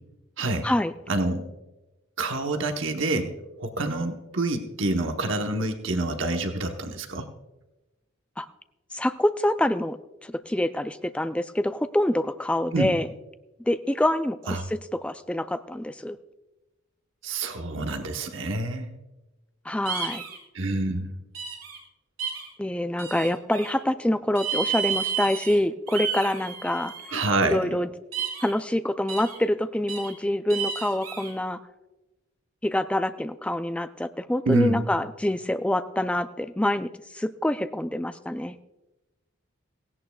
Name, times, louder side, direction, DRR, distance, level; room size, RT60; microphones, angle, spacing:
voice 1, 0.4-0.7 1.1-1.4 2.2-7.3 12.7-12.9 14.5-14.6 17.2-18.9 20.5-21.1 27.1-27.8 34.5-34.9, right 2 dB, 65° right, 5 dB, 1.0 m, -27 dB
voice 2, 8.9-13.1 13.7-14.6 15.0-16.2 19.7-20.2 22.6-26.9 27.5-27.9 28.4-31.6 32.6-38.5, left 1 dB, 5° left, 11 dB, 0.3 m, -26 dB
sound 1, 19.9-20.4 21.3-21.8 22.2-22.5 23.0-23.7 24.4-25.6 25.9-27.2 28.1-28.5 29.1-29.4 29.9-30.1 30.5-31.3, right 7 dB, 85° right, 5.0 m, -31 dB
17.0 x 16.0 x 2.3 m, 1.1 s
head